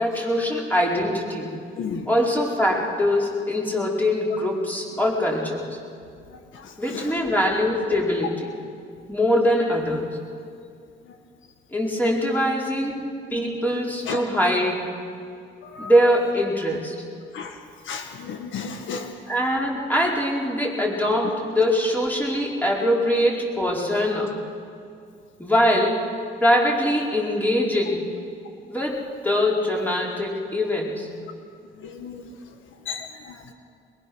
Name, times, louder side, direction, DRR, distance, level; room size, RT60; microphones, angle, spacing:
voice 1, 0.0-1.6 2.0-5.8 6.8-8.6 9.1-10.2 11.7-14.9 15.8-16.9 19.3-24.4 25.4-26.0 26.4-28.1 28.7-31.1, equal, 10° left, -2 dB, 4.9 m, -23 dB
voice 2, 1.5-2.1 6.3-7.1 14.1-14.2 15.6-15.9 17.3-17.6 17.8-19.2 24.1-24.2 31.8-32.2 32.8-33.5, left 6 dB, 75° left, 5 dB, 1.6 m, -34 dB
23.0 x 22.0 x 6.3 m, 2.3 s
cardioid pair, 90°, 20 cm